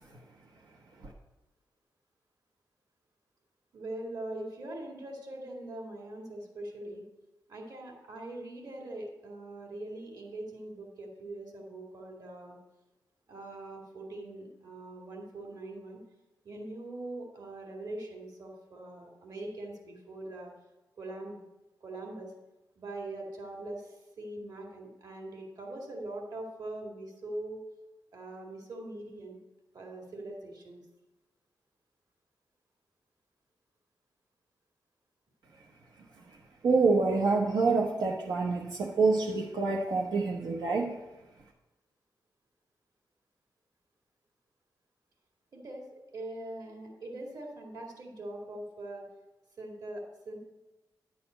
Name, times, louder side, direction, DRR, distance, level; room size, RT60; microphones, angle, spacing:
voice 1, 3.7-7.1 7.5-12.6 13.3-16.0 16.4-20.5 21.0-21.4 21.8-22.3 22.8-27.6 28.1-29.4 29.7-30.8 45.5-49.1 49.6-50.4, right 2 dB, 55° right, 0 dB, 2.1 m, -42 dB
voice 2, 36.6-41.0, right 4 dB, 75° right, -1 dB, 0.9 m, -27 dB
10.5 x 4.2 x 7.8 m, 1.1 s
wide cardioid pair, 125°, 7 cm